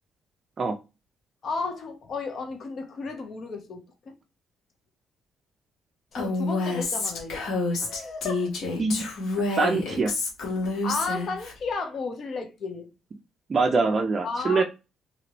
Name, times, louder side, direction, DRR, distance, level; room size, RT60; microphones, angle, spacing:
voice 1, 1.4-4.1 6.1-7.5 7.8-8.6 10.8-12.9 14.2-14.6, left 4 dB, 55° left, 0.8 m, -33 dB
Female speech woman speaking, 6.1-11.5, left 3 dB, 75° left, 1.3 m, -28 dB
voice 2, 9.5-10.1 13.5-14.6, right 4 dB, 40° right, 0.4 m, -24 dB
2.9 x 2.9 x 2.9 m
cardioid pair, 90°, 0 cm